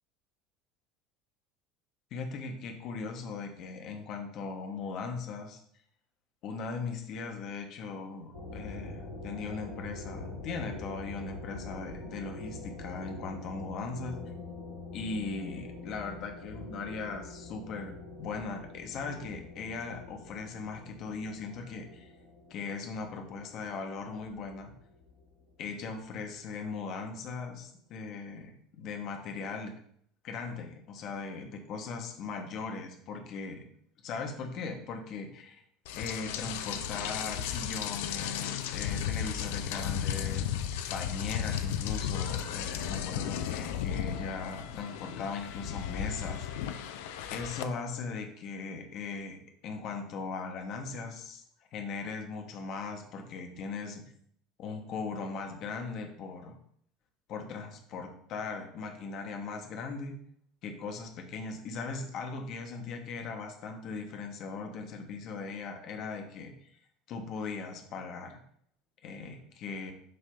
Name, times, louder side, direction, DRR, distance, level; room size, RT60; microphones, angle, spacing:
voice 1, 2.1-5.6 6.4-14.2 14.9-22.1 22.5-24.7 25.6-29.7 30.2-33.6 34.0-35.6 35.9-46.8 47.3-49.4 49.6-51.4 51.7-54.0 54.6-56.6 57.3-60.2 60.6-66.7 67.1-68.4 69.0-69.9, left 4 dB, 45° left, 3 dB, 1.2 m, -39 dB
sound 1, 8.3-25.8, left 2 dB, 85° right, 2.5 m, -45 dB
Rain, 35.8-47.6, left 9 dB, 60° left, 0.5 m, -34 dB
7.8 x 3.3 x 5.3 m, 0.66 s
figure-of-eight pair, 70°, 0 cm